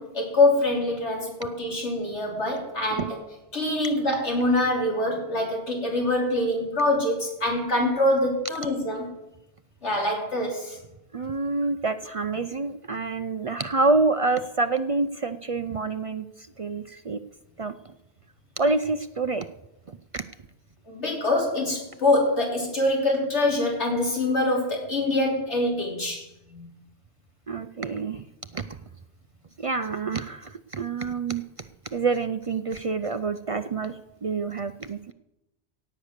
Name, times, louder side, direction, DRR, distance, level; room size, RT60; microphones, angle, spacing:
voice 1, 0.0-3.2 3.5-9.1 9.8-10.8 20.9-26.7, left 1 dB, 70° left, 0 dB, 3.6 m, -25 dB
voice 2, 11.1-16.2 16.6-17.2 17.6-17.7 18.6-19.5 20.1-20.2 27.5-28.2 28.5-28.6 29.6-31.4 31.9-35.0, right 3 dB, 55° right, 11 dB, 0.3 m, -27 dB
17.0 x 8.1 x 6.6 m, 0.91 s
omnidirectional pair, 1.2 m